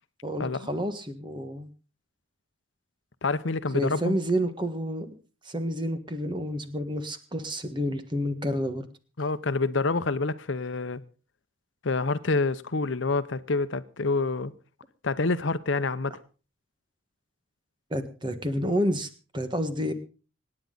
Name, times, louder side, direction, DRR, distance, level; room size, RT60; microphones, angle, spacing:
voice 1, 0.2-1.7 3.7-5.2 5.4-8.8 17.9-19.9, equal, 25° right, 1.5 m, -29 dB
voice 2, 3.2-4.2 9.2-11.0 11.8-14.5 15.0-16.1, left 3 dB, 70° left, 0.8 m, -27 dB
25.5 x 9.8 x 4.0 m
head